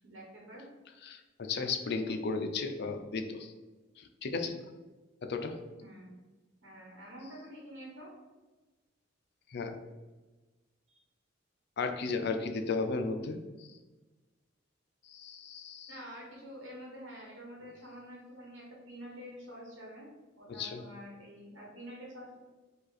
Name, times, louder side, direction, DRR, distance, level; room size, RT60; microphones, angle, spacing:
voice 1, 0.0-0.7 5.8-6.1 6.6-8.1 10.9-11.0 15.9-20.1 20.4-22.4, equal, 85° right, -3 dB, 1.4 m, -48 dB
voice 2, 1.0-3.5 4.0-4.6 5.2-5.5 9.5-9.8 11.8-13.7 15.0-15.9 20.6-20.8, left 4 dB, 55° left, 6 dB, 0.5 m, -34 dB
5.2 x 2.4 x 4.1 m, 1.2 s
head